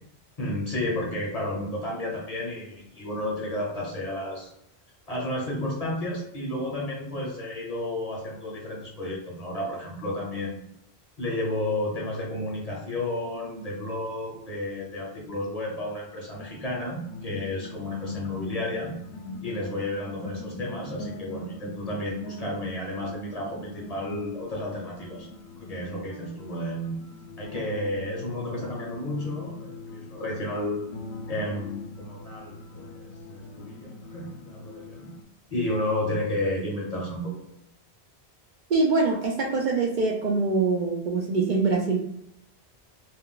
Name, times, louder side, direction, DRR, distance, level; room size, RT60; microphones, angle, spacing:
voice 1, 0.4-4.5 5.1-10.7 11.2-18.9 19.4-25.3 25.6-27.0 27.4-30.8 31.3-35.1 35.5-37.5, left 1 dB, 40° left, -2 dB, 0.8 m, -32 dB
sound 1, 16.3-35.2, left 2 dB, 80° left, 0.8 m, -42 dB
voice 2, 38.7-42.0, right 3 dB, 55° right, -2 dB, 0.6 m, -24 dB
2.4 x 2.2 x 3.7 m, 0.78 s
omnidirectional pair, 1.1 m